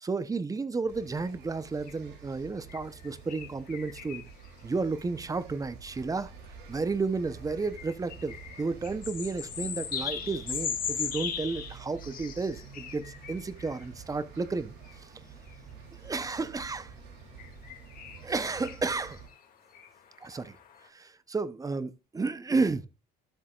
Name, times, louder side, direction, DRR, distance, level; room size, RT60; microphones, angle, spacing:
voice 1, 0.0-4.3 4.6-6.3 6.7-15.1 16.0-16.9 18.2-19.2 20.2-20.6 20.8-22.8, right 4 dB, 20° right, 0.8 m, -32 dB
sound 1, 0.9-19.3, right 6 dB, 80° right, 3.2 m, -49 dB
sound 2, 1.9-2.0 2.7-4.5 5.0-5.1 7.5-13.9 14.8-15.0 15.5-15.6 17.4-20.9, left 8 dB, 55° left, 2.3 m, -38 dB
12.5 x 7.3 x 2.4 m
cardioid pair, 110°, 17 cm